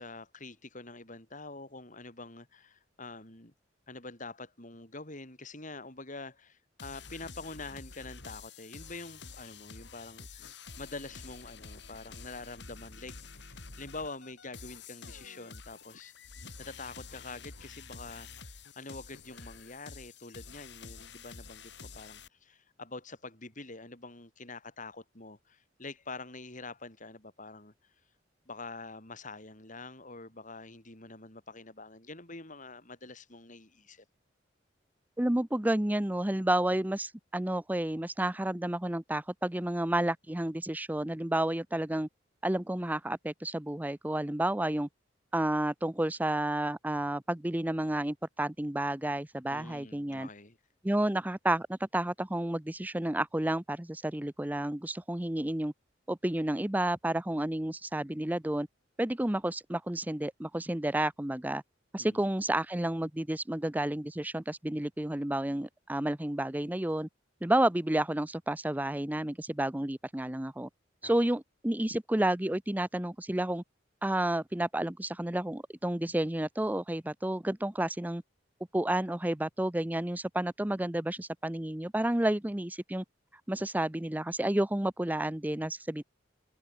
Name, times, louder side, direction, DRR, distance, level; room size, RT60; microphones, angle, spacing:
voice 1, 0.0-3.5 3.9-16.1 16.6-27.7 28.5-34.0 49.5-50.6 61.9-62.3 71.0-71.2, left 3 dB, 45° left, 5.8 m, -46 dB
sound 1, 6.8-22.3, left 4 dB, 65° left, 3.0 m, -49 dB
voice 2, 35.2-42.1 42.4-44.9 45.3-50.3 50.8-55.7 56.1-58.7 59.0-61.6 61.9-67.1 67.4-70.7 71.0-73.6 74.0-78.2 78.7-83.0 83.5-86.0, right 1 dB, 10° right, 0.6 m, -31 dB
head